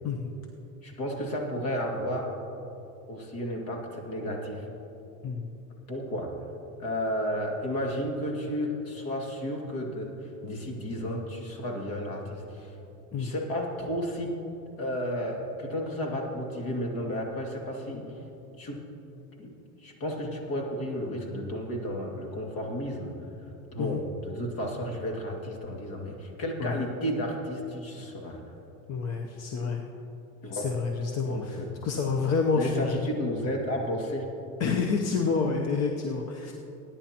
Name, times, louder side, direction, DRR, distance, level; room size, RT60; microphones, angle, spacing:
voice 1, 0.8-2.4 3.1-4.7 5.9-6.3 6.8-12.7 13.2-14.4 14.8-18.0 18.6-18.8 19.4-19.5 19.8-23.1 23.7-28.4 30.4-30.7 31.2-31.7 32.5-34.3, equal, 50° left, 1 dB, 2.4 m, -32 dB
voice 2, 28.9-29.8 30.5-33.0 34.6-36.5, left 4 dB, 35° left, 2 dB, 0.8 m, -28 dB
20.5 x 10.0 x 2.9 m, 2.9 s
supercardioid pair, 115°, 44 cm